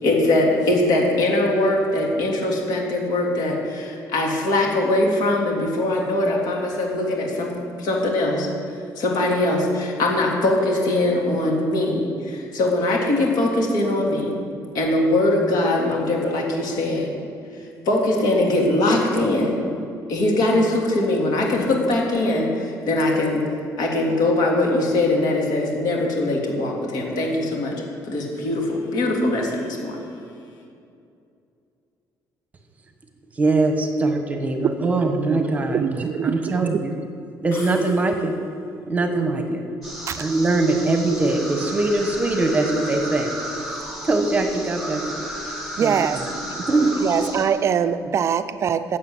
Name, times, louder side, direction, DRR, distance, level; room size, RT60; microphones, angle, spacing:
voice 1, 0.0-8.5 9.0-14.4 14.7-17.1 17.6-19.6 20.1-23.4 23.8-27.8 28.1-30.0, left 1 dB, 70° left, -1 dB, 2.9 m, -21 dB
voice 2, 33.4-36.9 37.4-38.4 38.9-39.6 40.2-43.3 44.0-45.0 45.8-47.2, right 2 dB, 20° right, 5 dB, 1.2 m, -22 dB
voice 3, 35.3-36.8 40.0-40.2 45.8-46.3 47.0-49.0, right 7 dB, 40° right, 11 dB, 0.4 m, -23 dB
sound 1, 37.5-38.6, left 3 dB, 50° left, 2.6 m, -41 dB
sound 2, 39.8-47.4, equal, ahead, 3.1 m, -33 dB
12.0 x 7.8 x 8.0 m, 2.5 s
cardioid pair, 150°, 7 cm